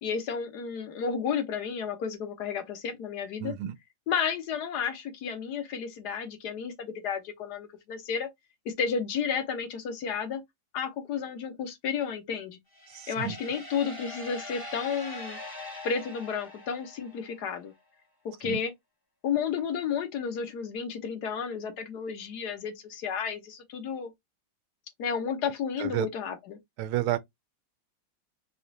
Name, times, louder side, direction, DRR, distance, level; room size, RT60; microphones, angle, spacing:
voice 1, 0.0-3.5 4.1-8.3 8.6-10.4 10.7-12.6 13.1-15.4 15.8-17.7 18.2-18.7 19.2-24.1 25.0-26.6, left 6 dB, 60° left, 1.3 m, -32 dB
voice 2, 3.4-3.7 12.9-13.4 18.4-18.6 25.8-26.1 26.8-27.2, right 13 dB, 85° right, 1.4 m, -30 dB
sound 1, 12.7-17.4, left 1 dB, 20° left, 0.5 m, -42 dB
5.0 x 2.4 x 2.7 m
omnidirectional pair, 2.3 m